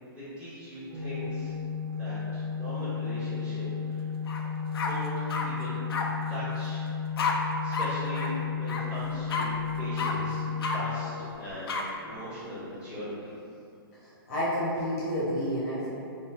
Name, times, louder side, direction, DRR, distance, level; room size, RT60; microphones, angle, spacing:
voice 1, 0.1-1.5 2.0-4.1 4.4-4.5 4.8-5.1 5.4-5.8 6.3-6.8 7.6-11.1 11.3-11.8 12.0-13.3, equal, 10° right, -15 dB, 1.5 m, -40 dB
Organ, 0.9-11.8, left 6 dB, 35° right, 0.7 m, -33 dB
sound 1, 4.3-4.4 4.7-5.5 5.9-6.0 7.2-7.3 7.7-7.9 8.1-8.3 8.7-8.8 9.3-9.5 10.0-10.1 10.6-10.8 11.7-11.8, left 4 dB, 70° left, 0.4 m, -30 dB
voice 2, 14.0-15.9, equal, 40° left, -9 dB, 0.9 m, -30 dB
3.2 x 2.6 x 2.3 m, 2.6 s
hypercardioid pair, 135°, 13 cm